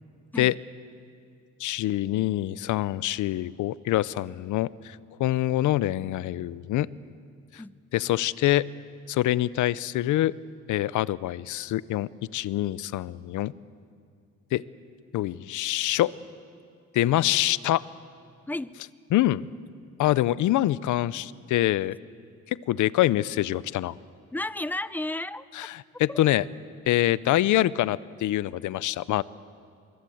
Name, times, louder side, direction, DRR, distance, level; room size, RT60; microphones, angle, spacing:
voice 1, 1.6-6.9 7.5-7.6 7.9-8.6 9.1-10.3 10.7-13.5 14.5-14.6 15.1-16.1 16.9-17.8 19.1-19.4 20.0-22.0 22.7-23.9 25.5-26.4 26.9-29.2, left 14 dB, 80° left, 19 dB, 0.7 m, -25 dB
voice 2, 24.3-25.5 26.1-26.2, left 2 dB, 5° left, 16 dB, 0.7 m, -32 dB
24.5 x 22.0 x 7.8 m, 2.2 s
cardioid pair, 90°, 30 cm